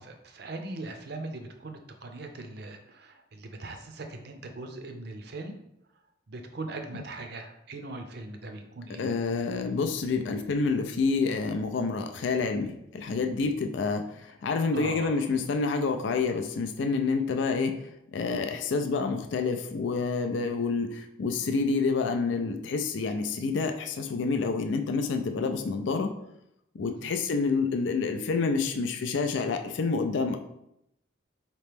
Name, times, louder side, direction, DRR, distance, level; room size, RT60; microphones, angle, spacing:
voice 1, 0.0-5.5 6.3-9.1 14.7-15.3 26.8-27.1, right 2 dB, 55° right, 5 dB, 0.5 m, -40 dB
voice 2, 9.0-17.8 18.1-26.1 26.7-30.4, left 4 dB, 65° left, 6 dB, 0.4 m, -28 dB
4.2 x 3.0 x 3.4 m, 0.79 s
head